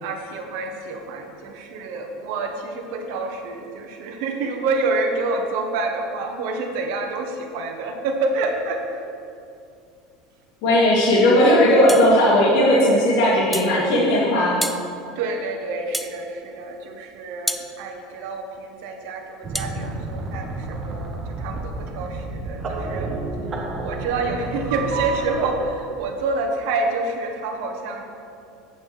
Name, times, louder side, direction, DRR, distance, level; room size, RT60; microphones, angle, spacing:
voice 1, 0.0-9.0 15.1-23.1 23.7-28.0, right 3 dB, 70° right, 3 dB, 1.3 m, -28 dB
voice 2, 10.6-14.6, left 1 dB, 55° left, -7 dB, 2.4 m, -17 dB
sound 1, 11.9-12.1 13.5-13.7 14.6-14.8 15.9-16.2 17.5-17.7 19.5-19.7, equal, ahead, 0.4 m, -28 dB
sound 2, 19.4-25.5, right 2 dB, 25° right, 1.1 m, -31 dB
8.3 x 7.8 x 5.1 m, 2.6 s
supercardioid pair, 155°, 0 cm